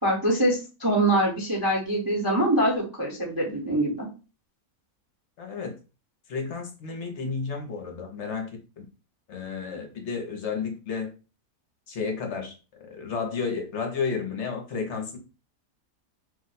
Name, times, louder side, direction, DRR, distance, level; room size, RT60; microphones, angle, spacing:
voice 1, 0.0-4.1, right 1 dB, 20° right, -3 dB, 0.6 m, -24 dB
voice 2, 5.4-5.8 6.3-8.5 8.8-8.9 9.3-11.1 11.9-15.2, left 5 dB, 60° left, 2 dB, 0.9 m, -32 dB
2.6 x 2.1 x 3.9 m, 0.33 s
omnidirectional pair, 1.6 m